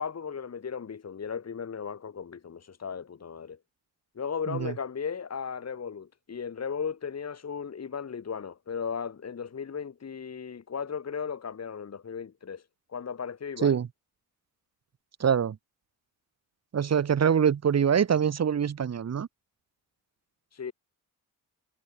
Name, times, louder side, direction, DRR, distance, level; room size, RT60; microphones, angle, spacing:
voice 1, 0.0-3.6 4.1-12.6 12.9-13.8 20.5-20.7, left 6 dB, 45° left, 3.3 m, -36 dB
voice 2, 15.2-15.6 16.7-19.3, right 7 dB, 45° right, 1.3 m, -24 dB
wide cardioid pair, 140°, 35 cm